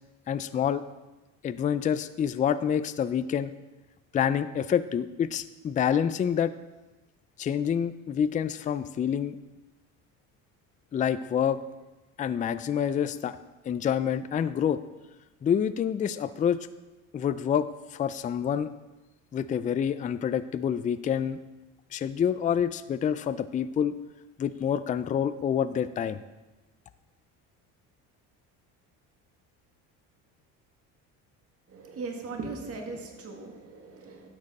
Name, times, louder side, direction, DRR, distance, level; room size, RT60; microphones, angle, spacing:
voice 1, 0.3-0.8 1.4-3.5 4.1-6.5 7.4-9.4 10.9-11.6 12.2-13.4 13.7-14.8 15.4-16.7 17.1-18.7 19.3-21.4 21.9-24.0 24.4-26.2, left 8 dB, 25° left, 13 dB, 0.3 m, -27 dB
voice 2, 31.7-34.3, right 3 dB, 40° right, 2 dB, 1.8 m, -38 dB
11.5 x 7.5 x 4.1 m, 1.1 s
cardioid pair, 105°, 36 cm